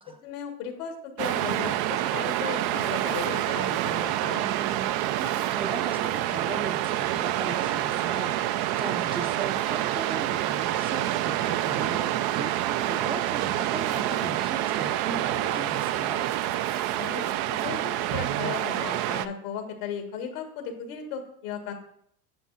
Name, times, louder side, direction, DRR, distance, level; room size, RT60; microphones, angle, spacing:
voice 1, 0.2-4.5 17.0-17.2 17.6-21.7, left 6 dB, 85° left, 5 dB, 1.4 m, -36 dB
Waves surf, 1.2-19.3, right 13 dB, 60° right, 0.5 m, -27 dB
voice 2, 4.4-16.2, right 2 dB, 15° right, 5 dB, 0.5 m, -38 dB
9.4 x 5.6 x 2.5 m, 0.68 s
supercardioid pair, 90°, 43 cm